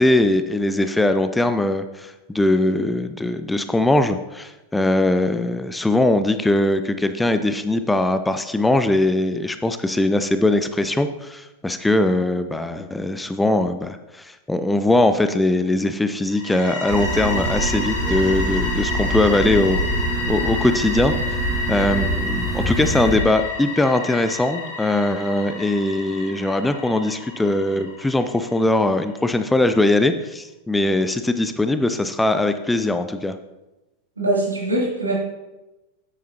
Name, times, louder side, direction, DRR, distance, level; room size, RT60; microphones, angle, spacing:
voice 1, 0.0-19.8 20.3-21.1 21.7-33.3, left 2 dB, 5° left, 9 dB, 0.4 m, -21 dB
sound 1, 16.3-29.0, left 2 dB, 55° left, 2.7 m, -30 dB
sound 2, 16.9-23.2, right 1 dB, 20° right, 1.7 m, -25 dB
voice 2, 34.2-35.1, right 1 dB, 80° right, -4 dB, 2.8 m, -22 dB
9.4 x 8.5 x 2.9 m, 1.1 s
figure-of-eight pair, 90°, 0 cm